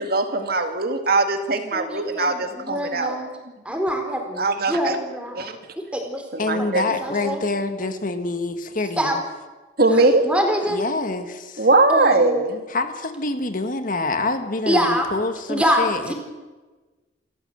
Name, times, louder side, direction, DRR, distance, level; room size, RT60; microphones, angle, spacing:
voice 1, 0.0-3.2 4.4-5.0 5.4-5.6 6.5-7.0 9.8-10.2 11.6-12.6, right 2 dB, 55° right, 6 dB, 2.1 m, -20 dB
voice 2, 1.7-3.3 3.6-5.4 5.9-6.2 7.0-7.4 9.0-9.2 9.9-10.8 11.9-12.5 14.7-15.1 15.5-16.1, equal, 5° right, 3 dB, 4.3 m, -24 dB
voice 3, 6.4-9.2 10.7-11.7 12.7-16.1, left 2 dB, 50° left, 8 dB, 1.6 m, -26 dB
27.5 x 14.5 x 7.9 m, 1.2 s
head